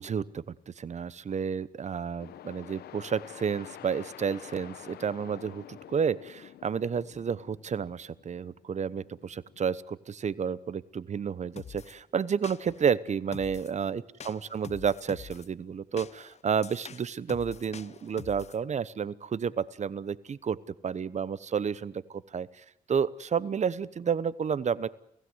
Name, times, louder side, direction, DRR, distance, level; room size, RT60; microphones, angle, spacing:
voice 1, 0.0-20.6 20.8-24.9, right 7 dB, 45° right, 19 dB, 0.9 m, -31 dB
sound 1, 2.2-9.6, left 12 dB, 90° left, 0.9 m, -49 dB
sound 2, 11.6-11.9 12.4-12.9 13.3-13.8 14.2-15.5 16.0-18.6, left 7 dB, 45° left, 0.9 m, -46 dB
29.5 x 16.0 x 8.0 m, 0.73 s
cardioid pair, 90°, 16 cm